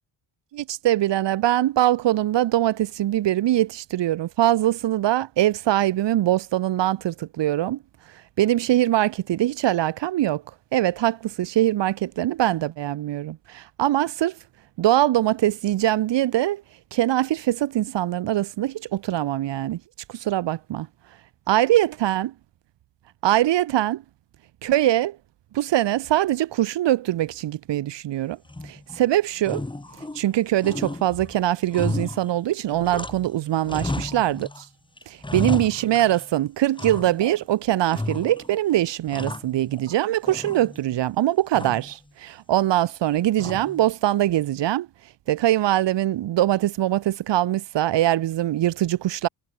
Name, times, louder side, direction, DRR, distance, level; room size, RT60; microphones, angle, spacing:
voice 1, 0.5-7.8 8.4-10.4 10.7-14.3 14.8-16.6 16.9-19.8 20.1-20.9 21.5-22.3 23.2-24.0 24.6-25.2 25.5-28.4 28.6-29.6 30.1-34.6 35.1-44.9 45.3-49.3, right 13 dB, 75° right, 1.3 m, -22 dB
sound 1, 28.5-29.0 29.4-30.3 30.6-33.4 33.6-34.6 35.0-36.3 36.8-37.4 37.9-38.6 38.9-40.0 40.3-41.0 41.5-42.0 43.4-43.9, left 2 dB, 10° left, 2.7 m, -33 dB
cardioid pair, 95°, 43 cm